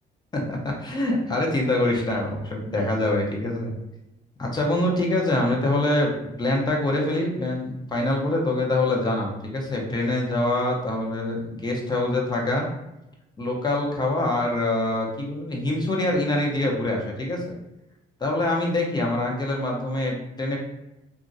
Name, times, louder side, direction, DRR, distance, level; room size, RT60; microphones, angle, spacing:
voice 1, 0.3-3.7 4.4-12.7 13.4-17.4 18.2-20.6, left 2 dB, 25° left, -1 dB, 0.7 m, -25 dB
3.0 x 2.5 x 2.6 m, 0.92 s
cardioid pair, 110°, 17 cm